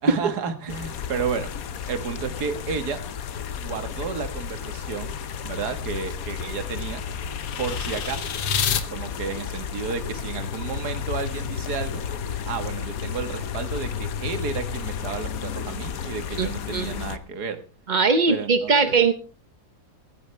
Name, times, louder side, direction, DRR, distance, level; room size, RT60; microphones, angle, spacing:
voice 1, 0.0-1.5 1.9-3.0 3.6-5.2 5.4-7.0 7.6-8.3 8.9-12.0 12.4-17.6 18.3-18.9, right 6 dB, 60° right, 8 dB, 2.1 m, -32 dB
sound 1, 0.7-17.2, left 7 dB, 55° left, 1.2 m, -32 dB
sound 2, 5.3-8.8, left 7 dB, 90° left, 1.9 m, -30 dB
voice 2, 16.4-16.9 17.9-19.1, right 4 dB, 45° right, 10 dB, 0.6 m, -20 dB
17.5 x 16.0 x 3.4 m, 0.33 s
omnidirectional pair, 2.0 m